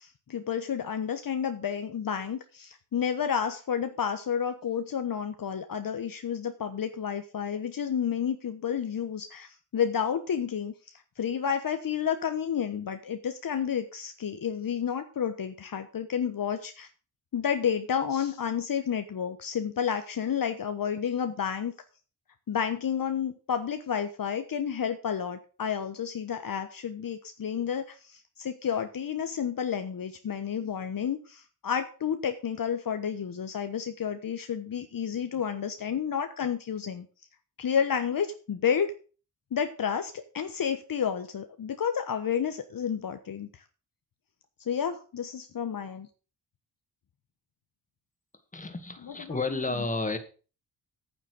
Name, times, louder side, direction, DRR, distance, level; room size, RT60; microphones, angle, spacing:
voice 1, 0.0-16.9 17.3-21.7 22.5-37.1 37.6-38.9 39.5-43.5 44.7-46.1 49.0-49.6, left 8 dB, 55° left, 1.2 m, -31 dB
voice 2, 48.5-50.2, left 3 dB, 20° left, 2.2 m, -31 dB
9.2 x 7.3 x 6.6 m
cardioid pair, 65°, 40 cm